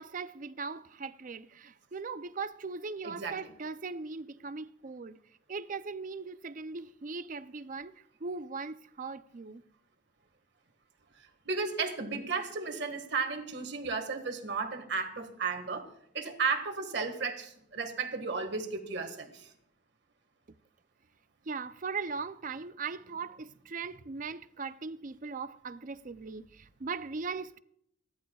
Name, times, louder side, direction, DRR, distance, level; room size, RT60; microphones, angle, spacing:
voice 1, 0.0-5.2 5.5-7.9 8.2-9.6 21.5-27.6, right 4 dB, 40° right, 0.5 m, -39 dB
voice 2, 3.0-3.4 11.5-15.9 16.1-19.5, right 4 dB, 60° right, 1.8 m, -34 dB
29.0 x 11.5 x 2.4 m
head